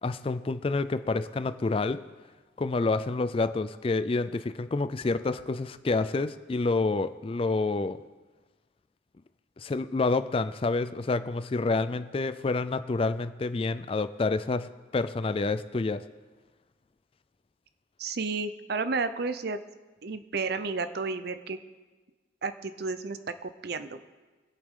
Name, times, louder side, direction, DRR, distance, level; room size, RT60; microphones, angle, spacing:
voice 1, 0.0-2.0 2.6-8.0 9.6-16.0, left 3 dB, 30° left, 13 dB, 0.3 m, -28 dB
voice 2, 18.0-19.6 20.0-21.6 22.4-24.0, right 4 dB, 55° right, 10 dB, 0.6 m, -32 dB
23.5 x 8.4 x 3.7 m, 1.3 s
head